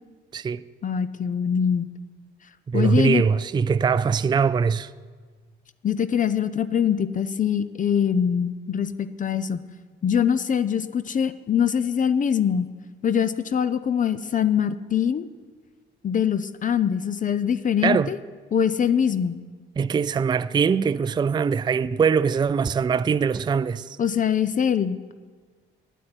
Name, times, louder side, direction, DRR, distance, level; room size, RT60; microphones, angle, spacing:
voice 1, 0.8-1.9 2.7-3.2 5.8-9.6 10.0-12.7 13.0-15.2 16.0-18.2 18.5-19.4 24.0-25.1, left 8 dB, 40° left, 0.6 m, -23 dB
voice 2, 2.7-4.9 17.8-18.1 19.8-24.0, right 6 dB, 20° right, 0.4 m, -22 dB
10.0 x 8.4 x 9.7 m
cardioid pair, 90°, 20 cm